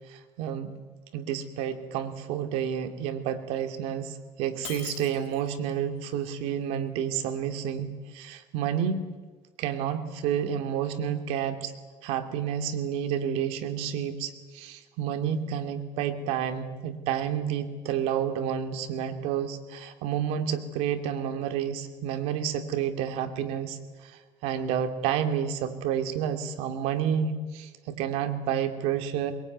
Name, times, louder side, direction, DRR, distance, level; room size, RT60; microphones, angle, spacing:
voice 1, 0.1-0.7 1.1-9.0 9.6-11.7 12.0-24.1 24.4-29.3, right 8 dB, 75° right, 7 dB, 2.6 m, -30 dB
Shatter, 4.6-5.7, left 12 dB, 65° left, 3.8 m, -42 dB
22.5 x 22.0 x 9.4 m, 1.3 s
cardioid pair, 120°, 11 cm